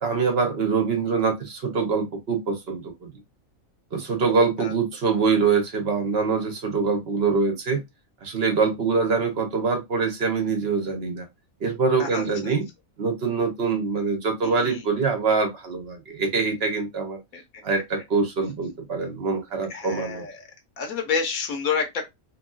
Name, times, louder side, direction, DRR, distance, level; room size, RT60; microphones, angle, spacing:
voice 1, 0.0-3.1 3.9-7.8 8.2-11.3 11.6-12.7 13.0-17.2 17.6-20.3, right 4 dB, 55° right, 0.8 m, -24 dB
voice 2, 12.0-12.5 14.4-14.8 17.3-17.4 19.7-20.4 20.8-22.1, left 6 dB, 85° left, 1.2 m, -29 dB
3.0 x 2.6 x 2.2 m
omnidirectional pair, 1.4 m